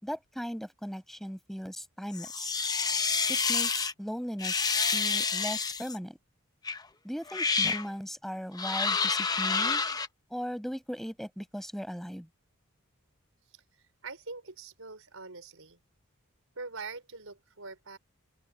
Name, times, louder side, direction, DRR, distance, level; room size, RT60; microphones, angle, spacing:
voice 1, 0.0-2.5 3.3-6.2 7.0-9.8 10.3-12.3, equal, ahead, 5.7 m, -38 dB
sound 1, 2.1-3.9 4.4-6.0 6.7-6.8 7.3-7.9 8.6-10.1, left 5 dB, 15° left, 0.7 m, -28 dB
voice 2, 14.0-15.8 16.5-18.0, right 4 dB, 70° right, 4.8 m, -43 dB
open air
head